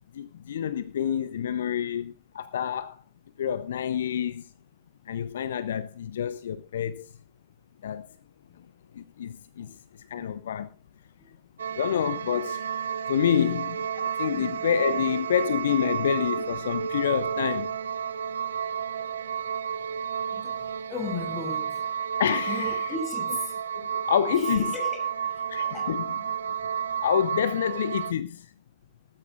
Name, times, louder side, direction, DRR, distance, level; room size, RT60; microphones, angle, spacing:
voice 1, 0.1-3.0 3.4-4.5 5.1-7.1 7.8-8.1 8.9-9.8 10.1-10.7 11.7-12.7 13.1-17.7 22.2-22.9 23.7-24.6 25.5-26.1 27.0-28.5, left 9 dB, 65° left, 0.6 m, -28 dB
sound 1, 11.6-28.1, right 7 dB, 70° right, 0.7 m, -31 dB
voice 2, 14.3-14.7 20.3-21.8 22.5-23.6 24.3-25.4 25.7-25.9 27.7-27.8, left 3 dB, 25° left, 6.2 m, -37 dB
18.0 x 14.0 x 2.5 m
figure-of-eight pair, 90°, 0 cm